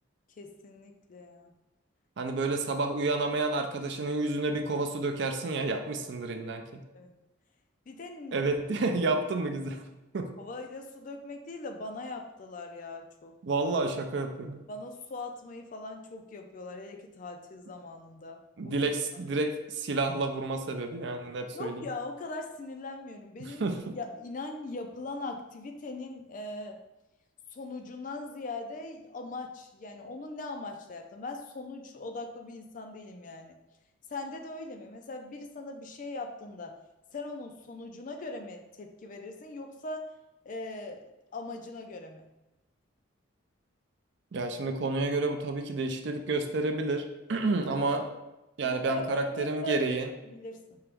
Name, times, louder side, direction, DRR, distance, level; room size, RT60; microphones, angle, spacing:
voice 1, 0.4-1.5 2.2-2.3 6.9-7.1 7.9-8.4 10.4-13.4 14.7-18.9 21.5-23.6 23.9-26.8 27.5-33.6 34.1-36.8 37.1-40.1 40.4-41.0 41.3-42.3 48.6-49.8 50.3-50.8, left 2 dB, 40° left, 4 dB, 0.4 m, -40 dB
voice 2, 2.2-6.8 8.3-9.8 10.1-10.3 13.4-14.6 18.6-21.9 23.4-23.8 44.3-48.1 48.6-50.1, right 3 dB, 55° right, 5 dB, 0.4 m, -30 dB
4.5 x 2.9 x 3.5 m, 1.0 s
head